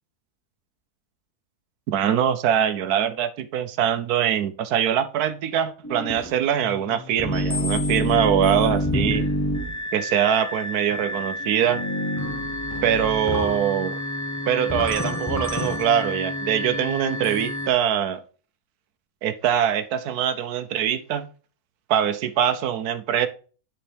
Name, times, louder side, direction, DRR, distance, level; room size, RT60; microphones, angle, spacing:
voice 1, 1.9-9.3 9.9-11.8 12.8-14.0 14.5-18.2 19.2-21.3 21.9-23.3, right 9 dB, 85° right, 1.2 m, -23 dB
sound 1, 5.8-17.7, left 1 dB, 15° left, 0.6 m, -28 dB
10.5 x 4.5 x 3.4 m
omnidirectional pair, 1.6 m